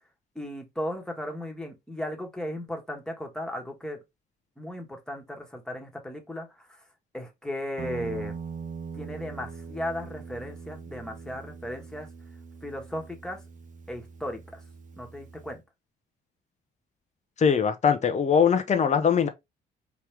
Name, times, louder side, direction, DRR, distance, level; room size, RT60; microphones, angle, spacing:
voice 1, 0.3-4.0 4.6-6.7 7.1-8.4 8.9-12.1 12.6-13.4 13.9-14.4 15.0-15.6, left 1 dB, 5° left, 1.5 m, -36 dB
Guitar, 7.8-15.6, right 5 dB, 40° right, 0.8 m, -42 dB
voice 2, 17.4-19.3, left 7 dB, 35° left, 0.7 m, -21 dB
4.6 x 3.0 x 3.4 m
cardioid pair, 90°, 20 cm